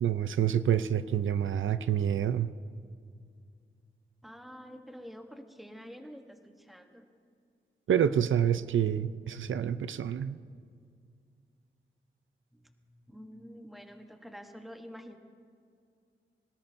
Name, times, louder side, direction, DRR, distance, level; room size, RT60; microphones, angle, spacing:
voice 1, 0.0-2.5 7.9-10.4, right 9 dB, 80° right, 12 dB, 0.5 m, -27 dB
voice 2, 4.2-7.1 12.5-12.7 13.1-15.2, equal, ahead, 4 dB, 1.0 m, -48 dB
25.0 x 18.5 x 2.7 m, 2.3 s
wide cardioid pair, 165°, 20 cm